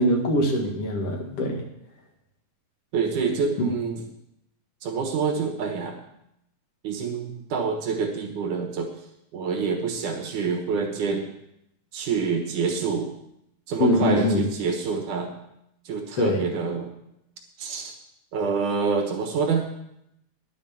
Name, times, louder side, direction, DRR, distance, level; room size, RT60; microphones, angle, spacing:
voice 1, 0.0-1.6 13.8-14.4 16.2-16.5, left 1 dB, 50° left, 1 dB, 2.6 m, -23 dB
voice 2, 2.9-4.0 4.8-6.0 6.8-8.9 9.3-11.3 11.9-13.1 13.7-15.3 15.9-16.9 17.6-17.9 18.3-19.7, right 5 dB, 75° right, 3 dB, 2.8 m, -27 dB
11.0 x 7.3 x 7.2 m, 0.80 s
omnidirectional pair, 3.6 m